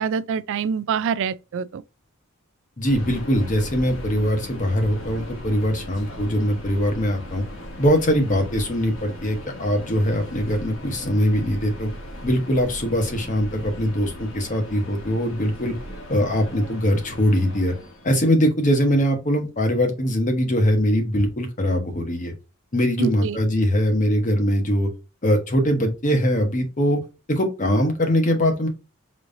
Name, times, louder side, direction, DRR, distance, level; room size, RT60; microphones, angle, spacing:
voice 1, 0.0-1.8 23.0-23.4, right 6 dB, 60° right, 0.4 m, -26 dB
Subway metro underground, 2.8-18.2, left 1 dB, 65° left, 1.5 m, -38 dB
voice 2, 2.8-7.4 7.8-11.9 12.2-15.8 16.1-17.7 18.0-22.3 22.7-24.9 25.2-27.0 27.3-28.7, equal, 40° left, 1.1 m, -22 dB
5.2 x 3.1 x 2.6 m
head